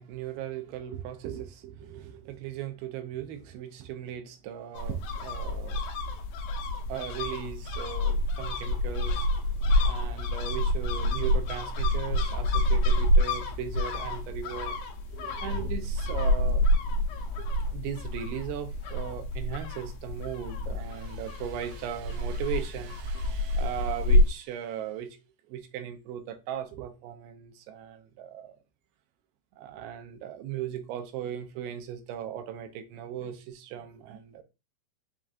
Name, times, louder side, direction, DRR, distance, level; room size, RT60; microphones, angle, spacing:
voice 1, 0.0-5.8 6.9-9.3 9.8-14.8 15.1-16.6 17.4-25.1 25.5-28.6 29.6-34.4, right 10 dB, 85° right, 2.6 m, -38 dB
sound 1, 4.7-24.3, left 1 dB, 80° left, 2.2 m, -28 dB
6.5 x 2.4 x 2.4 m
omnidirectional pair, 4.4 m